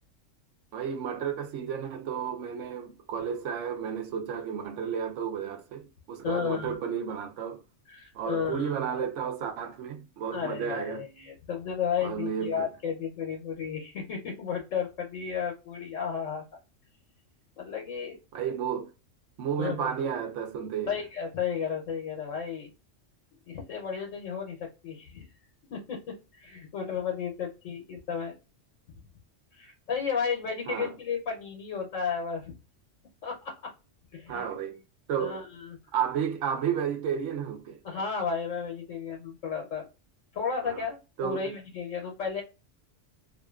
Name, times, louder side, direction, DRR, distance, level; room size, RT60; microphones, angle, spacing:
voice 1, 0.7-7.6 8.1-11.1 12.0-12.7 18.3-18.9 19.4-21.0 30.7-30.9 34.3-34.8 35.1-35.4 35.9-37.8 40.6-40.8 41.2-41.5, right 8 dB, 75° right, 0.9 m, -32 dB
voice 2, 6.2-6.8 7.9-8.8 10.3-16.4 17.6-18.2 19.6-19.9 20.9-22.7 23.5-25.3 25.7-28.3 29.5-32.6 33.2-33.7 34.1-34.4 35.2-35.8 37.8-39.9 40.3-42.4, left 6 dB, 80° left, 1.1 m, -33 dB
2.7 x 2.4 x 2.3 m
omnidirectional pair, 1.3 m